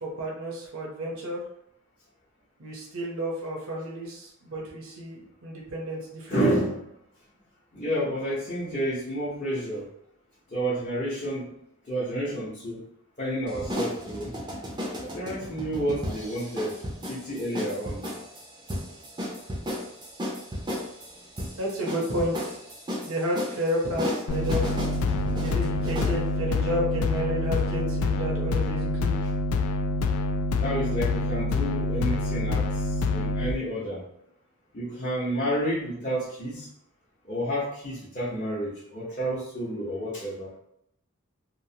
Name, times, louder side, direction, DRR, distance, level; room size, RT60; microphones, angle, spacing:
voice 1, 0.0-1.4 2.6-6.6 21.6-22.6 23.0-24.8 25.4-29.1, equal, 75° right, -3 dB, 0.7 m, -31 dB
voice 2, 6.3-6.8 7.7-9.9 10.5-11.5 11.9-12.8 13.2-14.4 15.0-16.8 17.1-18.0 30.6-34.0 34.7-36.7 37.2-40.5, equal, 35° left, -9 dB, 0.7 m, -30 dB
sound 1, 13.5-26.2, equal, 20° right, 0.5 m, -35 dB
sound 2, 24.3-33.5, left 2 dB, 80° left, 0.3 m, -26 dB
3.0 x 2.1 x 2.7 m, 0.76 s
head